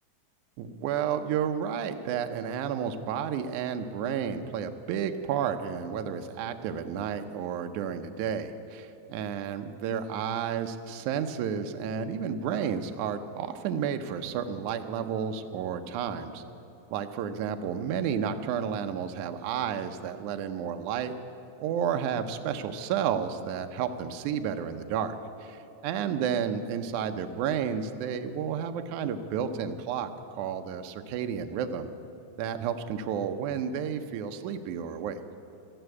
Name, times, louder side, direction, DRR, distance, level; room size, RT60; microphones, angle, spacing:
voice 1, 0.6-16.4 16.9-21.1 21.6-25.2 25.4-31.9 32.4-35.2, right 8 dB, 75° right, 7 dB, 2.1 m, -31 dB
13.0 x 11.0 x 8.3 m, 3.0 s
omnidirectional pair, 3.6 m